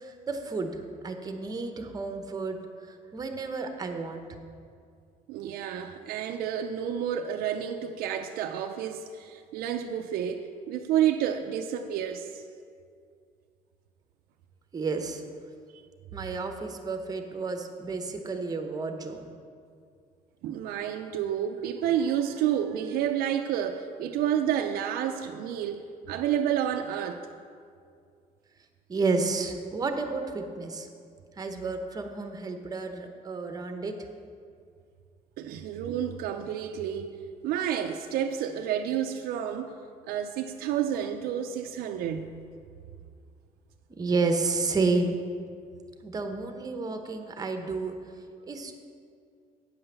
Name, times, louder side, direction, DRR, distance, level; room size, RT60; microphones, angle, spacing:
voice 1, 0.0-2.6 2.9-4.2 14.7-15.2 16.1-19.2 28.9-30.9 31.4-33.9 44.0-45.2 46.0-48.0 48.5-48.8, right 3 dB, 25° right, 6 dB, 0.9 m, -31 dB
voice 2, 5.3-12.4 20.4-25.8 26.1-27.2 35.4-37.1 37.4-39.7 40.0-42.4, right 9 dB, 90° right, 5 dB, 0.5 m, -30 dB
8.7 x 5.6 x 6.9 m, 2.3 s
cardioid pair, 125°, 15 cm